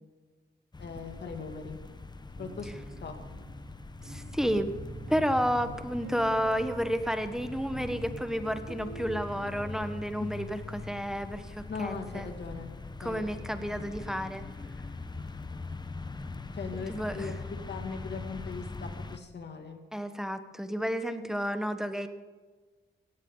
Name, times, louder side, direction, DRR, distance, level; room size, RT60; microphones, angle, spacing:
sound 1, 0.7-19.2, left 3 dB, 20° left, 0.9 m, -42 dB
voice 1, 0.8-1.8 2.4-2.7 3.0-3.5 10.2-10.3 11.7-12.7 13.0-13.2 15.1-15.2 16.5-17.3 17.7-19.8, left 5 dB, 65° left, 4 dB, 2.4 m, -39 dB
sound 2, 2.4-10.1, right 2 dB, 65° right, 5.3 m, -45 dB
voice 2, 4.0-4.7 5.1-12.3 13.0-14.4 16.9-17.3 19.9-22.1, equal, 5° right, 8 dB, 1.2 m, -31 dB
17.5 x 16.0 x 3.9 m, 1.4 s
cardioid pair, 95°, 19 cm